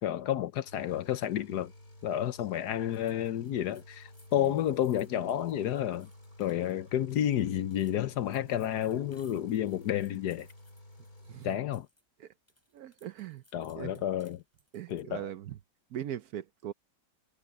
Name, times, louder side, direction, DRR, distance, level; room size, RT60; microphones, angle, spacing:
voice 1, 0.0-1.7 2.0-6.1 6.4-10.5 11.4-11.9 13.5-14.4 14.9-15.3, left 11 dB, 70° left, 1.3 m, -31 dB
sound 1, 0.7-11.5, left 1 dB, 55° left, 7.3 m, -53 dB
sound 2, 2.9-12.0 12.3-15.2, left 1 dB, 10° left, 6.8 m, -66 dB
voice 2, 12.7-13.4 13.8-14.0 14.7-15.6 15.9-16.7, right 11 dB, 65° right, 1.1 m, -40 dB
omnidirectional pair, 1.9 m